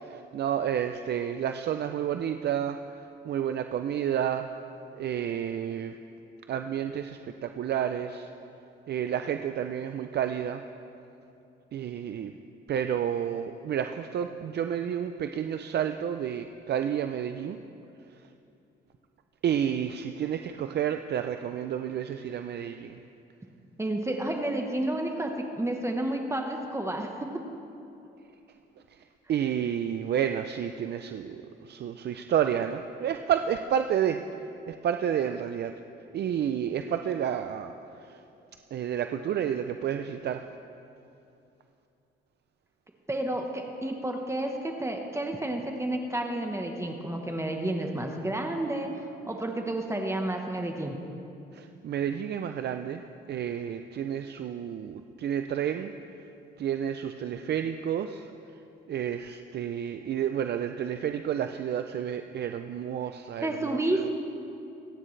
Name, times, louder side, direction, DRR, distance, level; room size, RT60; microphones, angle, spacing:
voice 1, 0.0-2.8 3.2-4.4 4.9-5.9 6.5-8.3 8.9-10.6 11.7-12.3 12.7-17.6 19.4-23.0 29.3-34.2 34.7-35.7 36.1-37.7 38.1-38.2 38.7-40.4 51.5-53.0 53.3-55.9 56.6-58.3 58.9-64.0, right 9 dB, 55° right, 8 dB, 0.5 m, -30 dB
voice 2, 23.8-27.3 43.1-49.0 49.3-50.9 63.4-64.1, right 1 dB, 15° right, 2 dB, 1.1 m, -30 dB
25.0 x 9.8 x 3.3 m, 2.7 s
cardioid pair, 90°, 20 cm